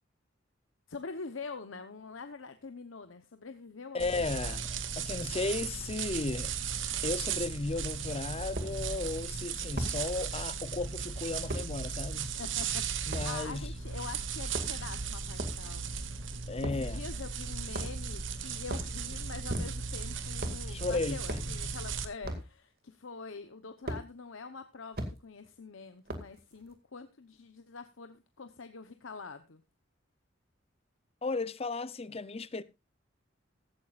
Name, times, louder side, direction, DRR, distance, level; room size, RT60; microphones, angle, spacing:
voice 1, 0.9-4.6 12.4-16.0 16.6-29.6, left 4 dB, 85° left, 0.9 m, -45 dB
voice 2, 3.9-4.7 5.0-6.5 7.0-12.3 13.1-13.7 16.5-17.0 20.7-21.6 31.2-32.6, left 3 dB, 30° left, 0.6 m, -35 dB
sound 1, 4.0-22.0, right 6 dB, 75° right, 1.3 m, -36 dB
sound 2, 8.6-8.7 9.8-10.0 11.5-11.7 13.1-13.3 14.4-14.9 15.4-15.6 16.6-16.9 17.7-18.1 18.6-18.9 19.5-20.0 20.4-20.6 21.3-21.5 22.2-22.5 23.9-24.0 24.9-25.1 26.1-26.4, right 1 dB, 50° right, 2.2 m, -36 dB
15.5 x 13.0 x 2.5 m
head